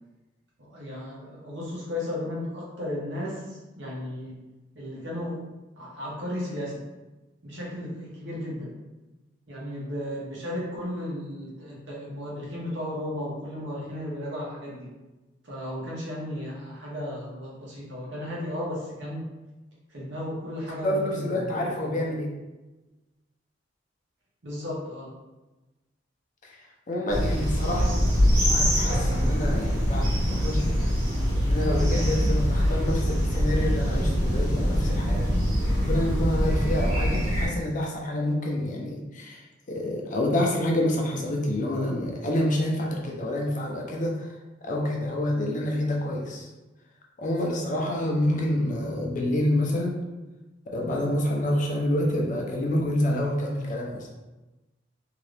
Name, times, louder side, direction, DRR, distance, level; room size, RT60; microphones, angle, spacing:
voice 1, 0.6-4.4 4.7-5.5 5.8-6.8 7.4-8.7 9.5-14.9 15.4-19.3 19.9-21.5 21.8-22.1 24.4-25.2, left 1 dB, 75° right, -5 dB, 1.0 m, -34 dB
voice 2, 20.8-22.3 26.4-26.6 26.9-28.0 28.3-30.8 31.4-35.3 35.8-44.3 44.6-46.5 47.2-50.0 50.7-54.1, left 1 dB, 45° left, -1 dB, 0.6 m, -28 dB
sound 1, 27.1-37.5, equal, 50° right, 1.3 m, -24 dB
2.8 x 2.5 x 3.2 m, 1.1 s
head